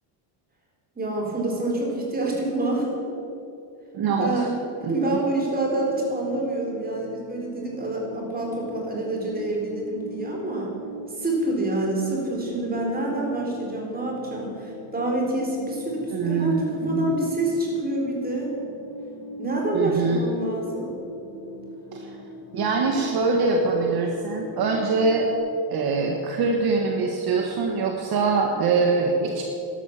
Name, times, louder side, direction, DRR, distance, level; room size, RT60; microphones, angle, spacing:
voice 1, 1.0-2.9 4.2-4.6 4.9-10.8 11.1-18.5 19.4-20.9, right 2 dB, 20° right, -2 dB, 4.1 m, -27 dB
voice 2, 3.9-4.5 4.8-5.2 16.1-17.1 19.7-20.2 21.9-22.1 22.5-25.3 25.7-29.4, right 4 dB, 55° right, 2 dB, 1.6 m, -23 dB
sound 1, 5.7-25.4, left 1 dB, 75° left, 3.2 m, -40 dB
12.5 x 12.0 x 7.4 m, 2.7 s
cardioid pair, 135°, 45 cm